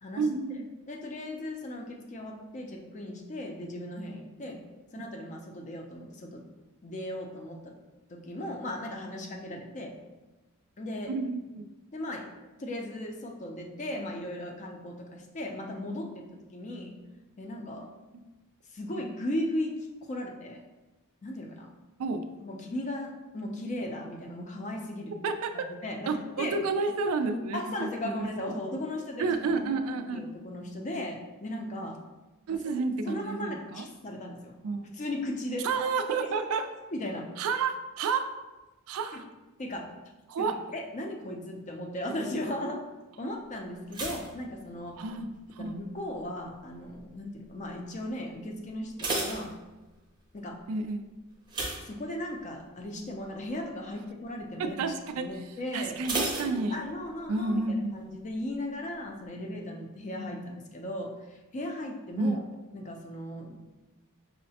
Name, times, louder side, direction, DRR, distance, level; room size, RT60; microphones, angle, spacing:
voice 1, 0.2-0.6 5.0-5.1 11.1-11.7 22.0-22.2 25.2-25.7 26.1-28.5 29.2-30.3 32.5-33.9 34.6-34.9 35.6-36.7 37.4-38.3 38.9-39.2 40.3-40.6 45.0-45.3 45.5-45.8 50.7-51.1 54.6-55.3 55.7-56.8 57.3-58.0 62.2-62.4, right 4 dB, 65° right, 8 dB, 0.3 m, -30 dB
voice 2, 0.9-4.6 4.9-6.5 6.8-7.7 8.1-9.9 10.8-11.1 11.9-12.3 12.6-16.3 16.5-17.0 17.4-17.9 18.7-20.6 21.2-21.7 22.4-25.2 25.8-26.6 27.5-32.0 33.1-34.6 34.9-35.7 36.2-36.3 36.9-37.3 39.1-39.2 39.6-39.9 40.4-42.8 43.2-45.0 45.6-49.6 50.3-50.6 51.8-56.0 56.4-62.4 62.7-63.6, left 1 dB, 35° left, 2 dB, 0.4 m, -37 dB
sound 1, 43.9-45.4 45.6-46.1 46.7-47.1 47.4-47.5 47.9-48.0 48.6-50.2 51.5-52.6 53.0-53.2 53.6-53.7 56.0-57.2 57.5-57.6, right 2 dB, 20° right, 0.6 m, -34 dB
5.5 x 2.1 x 2.7 m, 1.1 s
head